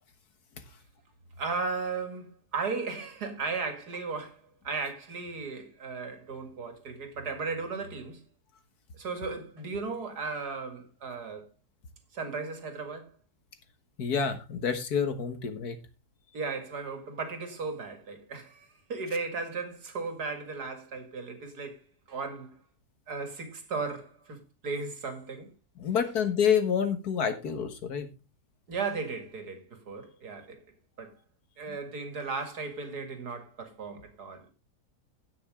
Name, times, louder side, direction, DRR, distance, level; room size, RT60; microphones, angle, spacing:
voice 1, 1.4-8.2 8.9-11.5 12.1-13.1 16.3-22.6 23.1-25.5 28.7-30.6 31.0-31.1 31.6-34.5, right 4 dB, 80° right, 2.6 m, -36 dB
voice 2, 14.0-15.8 25.8-28.1, left 7 dB, 75° left, 1.9 m, -28 dB
16.5 x 6.1 x 3.6 m
omnidirectional pair, 1.7 m